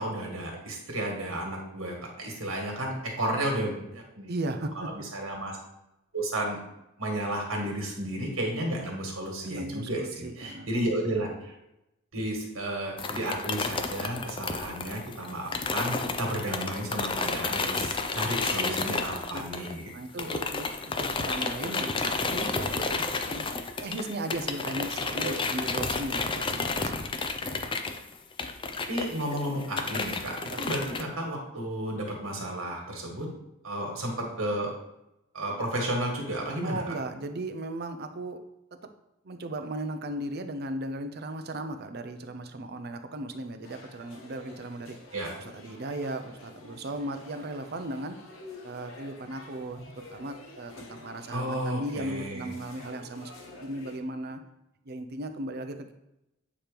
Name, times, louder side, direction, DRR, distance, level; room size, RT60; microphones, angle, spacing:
voice 1, 0.0-4.3 4.7-5.6 6.1-6.6 7.0-11.5 12.1-20.5 25.2-25.3 28.9-33.3 33.6-34.7 35.3-36.8 45.1-45.3 51.3-52.5, right 1 dB, 75° right, 0 dB, 1.8 m, -32 dB
voice 2, 4.3-4.9 9.4-10.7 18.5-18.7 19.3-19.7 19.9-23.5 23.8-27.0 30.5-30.6 36.6-38.4 38.7-38.8 39.2-45.0 45.4-48.2 48.6-53.3 53.6-54.4 54.9-55.9, right 1 dB, 50° right, 7 dB, 0.6 m, -36 dB
sound 1, 13.0-19.9 20.2-31.0, left 4 dB, 25° left, 0.4 m, -31 dB
sound 2, 43.6-54.0, left 2 dB, 75° left, 1.2 m, -49 dB
8.4 x 3.0 x 5.1 m, 0.89 s
head